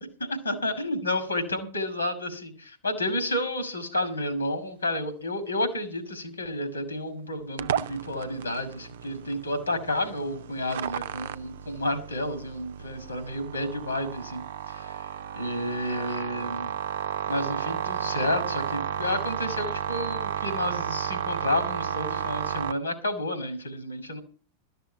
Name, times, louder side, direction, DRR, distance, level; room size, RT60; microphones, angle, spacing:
voice 1, 0.4-14.9 15.3-16.7 17.3-24.2, left 1 dB, 80° left, 10 dB, 2.5 m, -31 dB
sound 1, 7.6-22.7, right 9 dB, 60° right, 0.5 m, -33 dB
12.5 x 6.8 x 8.1 m, 0.39 s
figure-of-eight pair, 90°, 0 cm